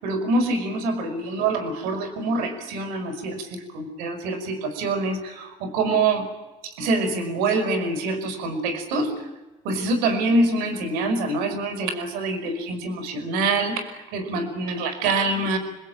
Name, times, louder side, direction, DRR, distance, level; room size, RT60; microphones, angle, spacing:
voice 1, 0.0-6.3 6.6-9.2 9.6-15.6, right 2 dB, 80° right, 8 dB, 5.6 m, -25 dB
30.0 x 21.0 x 9.1 m, 1.1 s
supercardioid pair, 65°, 15 cm